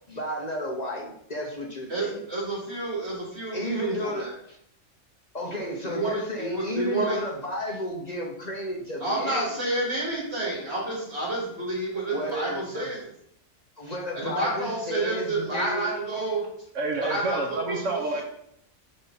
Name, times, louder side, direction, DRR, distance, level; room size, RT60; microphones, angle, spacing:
voice 1, 0.1-2.2 3.5-4.6 5.3-9.5 12.1-12.9 13.8-15.9, left 1 dB, 35° left, -1 dB, 1.2 m, -33 dB
voice 2, 1.9-4.3 5.8-7.2 9.0-13.0 14.1-16.4 17.0-17.8, right 2 dB, 60° right, -5 dB, 3.3 m, -29 dB
voice 3, 16.7-18.2, right 3 dB, 80° right, 1 dB, 1.4 m, -28 dB
6.7 x 5.5 x 4.2 m, 0.71 s
omnidirectional pair, 1.3 m